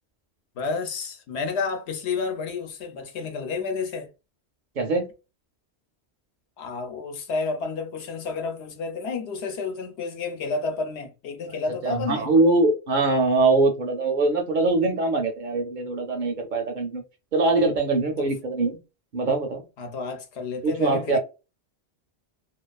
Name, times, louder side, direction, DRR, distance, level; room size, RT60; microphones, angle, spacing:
voice 1, 0.5-4.1 6.6-12.3 18.2-18.3 19.8-21.2, left 4 dB, 80° left, 0.9 m, -30 dB
voice 2, 11.8-17.0 17.3-18.8 19.1-19.6 20.6-21.2, right 3 dB, 55° right, 0.6 m, -22 dB
2.4 x 2.4 x 2.2 m
omnidirectional pair, 1.1 m